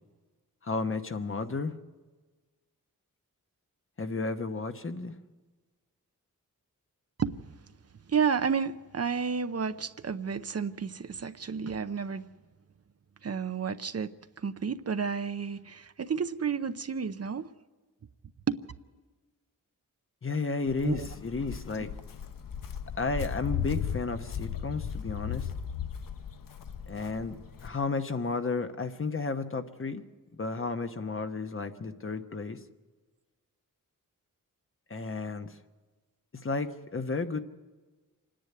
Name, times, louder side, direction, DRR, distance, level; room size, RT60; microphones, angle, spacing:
voice 1, 0.6-1.7 4.0-5.1 20.2-21.9 23.0-25.5 26.9-27.4 27.6-30.0 30.4-32.6 34.9-35.5 36.4-37.4, left 4 dB, 40° left, 1.1 m, -32 dB
voice 2, 7.2-7.5 8.1-12.2 13.2-14.1 14.4-17.5 18.5-18.6 20.8-21.1 21.8-21.9, right 6 dB, 50° right, 0.7 m, -31 dB
Walk footsteps, 20.7-27.7, left 8 dB, 80° left, 0.8 m, -36 dB
26.5 x 10.5 x 9.5 m
wide cardioid pair, 120°, 33 cm